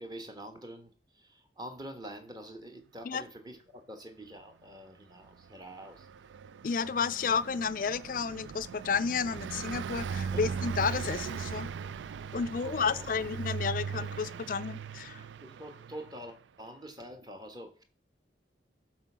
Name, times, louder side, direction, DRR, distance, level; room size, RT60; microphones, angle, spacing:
voice 1, 0.0-6.1 10.3-10.6 12.6-13.2 15.4-17.8, right 1 dB, 20° right, 1.2 m, -46 dB
Car passing by, 5.3-16.3, right 6 dB, 85° right, 0.3 m, -39 dB
voice 2, 6.6-11.7 12.3-15.2, left 5 dB, 50° left, 0.4 m, -31 dB
7.5 x 4.4 x 6.1 m
head